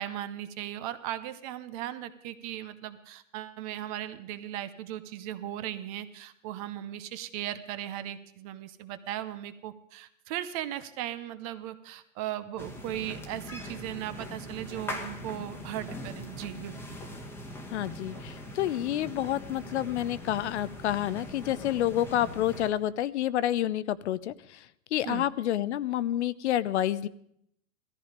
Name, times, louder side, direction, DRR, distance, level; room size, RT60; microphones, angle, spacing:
voice 1, 0.0-16.8 25.1-25.2, right 12 dB, 25° right, 12 dB, 0.7 m, -37 dB
sound 1, 12.6-22.7, left 1 dB, 5° left, 1.2 m, -41 dB
voice 2, 17.7-24.7 24.9-27.1, left 12 dB, 55° left, 17 dB, 0.6 m, -29 dB
17.0 x 14.0 x 5.1 m, 0.72 s
hypercardioid pair, 150°, 42 cm